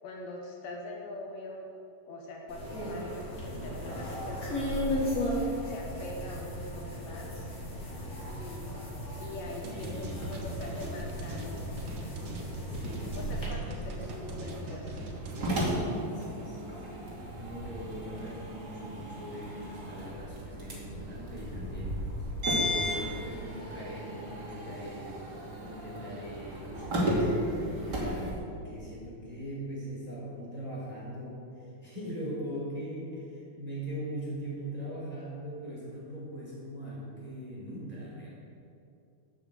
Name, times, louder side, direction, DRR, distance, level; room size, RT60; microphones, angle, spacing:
voice 1, 0.0-1.7 2.1-4.8 5.0-7.5 8.3-8.9 9.2-11.7 13.1-15.0, left 1 dB, 70° left, 0 dB, 2.7 m, -43 dB
sound 1, 2.5-13.4, equal, 25° left, 3.2 m, -36 dB
voice 2, 9.6-10.9 12.6-14.4 15.6-17.1 17.3-25.1 25.6-38.3, equal, 10° right, -6 dB, 3.6 m, -41 dB
sound 2, 9.6-15.6, right 1 dB, 85° right, 1.0 m, -40 dB
sound 3, 12.3-28.3, equal, 30° right, 2.7 m, -35 dB
12.0 x 8.0 x 8.0 m, 2.6 s
omnidirectional pair, 4.3 m